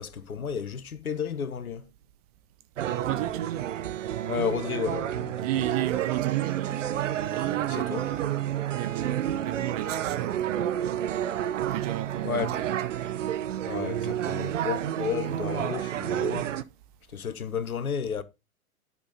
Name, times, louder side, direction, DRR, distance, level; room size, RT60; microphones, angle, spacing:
voice 1, 0.0-1.9 4.3-5.7 7.7-8.1 12.2-12.6 13.7-16.5 17.1-18.2, left 7 dB, 75° left, 1.1 m, -32 dB
voice 2, 2.8-3.7 5.4-6.9 7.3-10.7 11.6-12.7, right 15 dB, 25° right, 0.6 m, -33 dB
sound 1, 2.8-16.6, right 11 dB, 60° right, 0.9 m, -30 dB
10.0 x 5.4 x 4.0 m
figure-of-eight pair, 115°, 43 cm